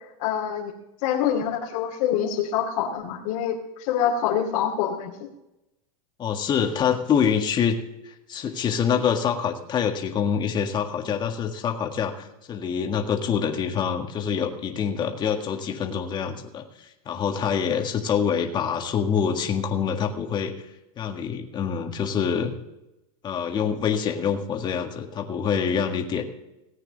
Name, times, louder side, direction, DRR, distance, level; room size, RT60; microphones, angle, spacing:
voice 1, 0.2-0.7 1.0-5.3, left 9 dB, 60° left, -3 dB, 2.5 m, -26 dB
voice 2, 6.2-7.8 8.1-20.5 21.0-22.5 23.2-26.2, left 7 dB, 25° left, 3 dB, 1.8 m, -26 dB
17.5 x 9.0 x 4.0 m, 0.93 s
supercardioid pair, 145°, 18 cm